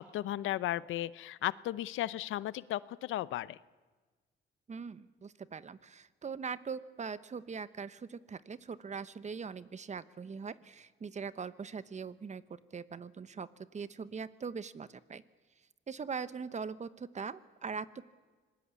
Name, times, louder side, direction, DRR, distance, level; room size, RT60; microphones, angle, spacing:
voice 1, 0.0-3.6, left 14 dB, 80° left, 18 dB, 0.7 m, -35 dB
voice 2, 4.7-15.2 15.9-18.0, right 5 dB, 35° right, 15 dB, 1.0 m, -41 dB
26.0 x 20.0 x 8.4 m, 1.4 s
cardioid pair, 90°, 20 cm